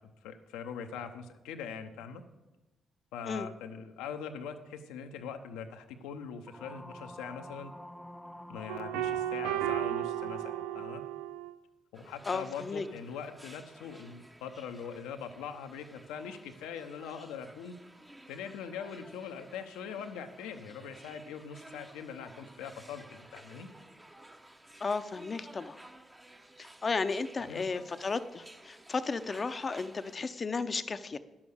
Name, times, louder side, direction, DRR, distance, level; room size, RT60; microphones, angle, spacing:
voice 1, 0.2-2.2 3.1-7.7 8.5-11.0 11.9-17.8 18.3-23.7 27.5-27.7, left 7 dB, 80° left, 7 dB, 0.7 m, -42 dB
sound 1, 6.5-11.0, left 1 dB, ahead, 0.5 m, -48 dB
sound 2, 8.7-11.6, right 13 dB, 85° right, 0.3 m, -34 dB
sound 3, 11.9-30.1, right 1 dB, 15° right, 1.0 m, -54 dB
voice 2, 12.2-12.9 24.8-25.8 26.6-31.2, left 4 dB, 45° left, 12 dB, 0.7 m, -34 dB
10.5 x 7.2 x 6.5 m, 1.1 s
hypercardioid pair, 40°, 0 cm